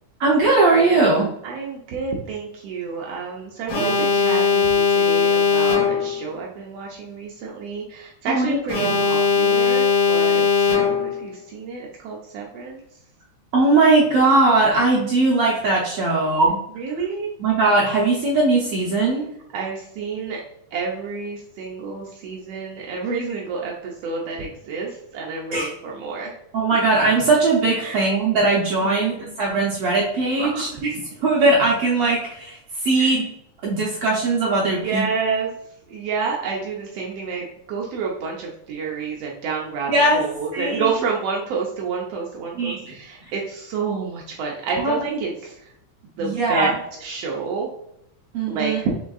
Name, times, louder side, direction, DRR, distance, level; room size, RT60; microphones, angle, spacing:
voice 1, 0.2-1.3 8.3-8.9 13.5-16.6 17.4-19.3 25.5-25.7 26.5-30.9 31.2-33.3 33.6-35.0 39.9-40.2 40.5-41.1 42.5-42.9 43.2-43.3 44.8-45.2 46.2-46.7 48.3-48.8, right 3 dB, 70° right, -3 dB, 1.4 m, -19 dB
voice 2, 1.4-12.8 16.8-17.3 19.5-20.4 20.7-26.3 27.8-28.0 28.8-28.9 29.2-29.3 30.4-30.6 33.0-33.1 34.8-35.5 35.9-45.5 46.2-46.7 47.0-47.7 48.5-48.9, right 5 dB, 90° right, -1 dB, 1.3 m, -29 dB
Alarm, 3.7-6.2 8.7-11.2, left 6 dB, 90° left, 2.5 m, -19 dB
6.3 x 3.5 x 2.3 m, 0.78 s
omnidirectional pair, 3.5 m